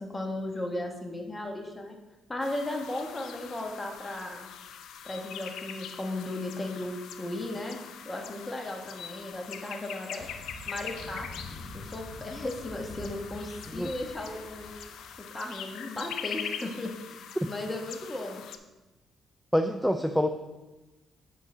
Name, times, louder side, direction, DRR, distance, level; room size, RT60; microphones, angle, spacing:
voice 1, 0.0-2.0 2.3-4.5 5.0-7.8 8.0-10.3 10.7-11.3 11.7-14.7 15.2-18.4, left 1 dB, 20° left, 2 dB, 1.2 m, -36 dB
sound 1, 2.4-18.6, left 8 dB, 80° left, 0.4 m, -43 dB
sound 2, 10.2-15.2, left 2 dB, 50° left, 0.9 m, -46 dB
voice 2, 19.5-20.3, equal, ahead, 6 dB, 0.3 m, -26 dB
9.8 x 3.8 x 3.8 m, 1.1 s
cardioid pair, 90°, 0 cm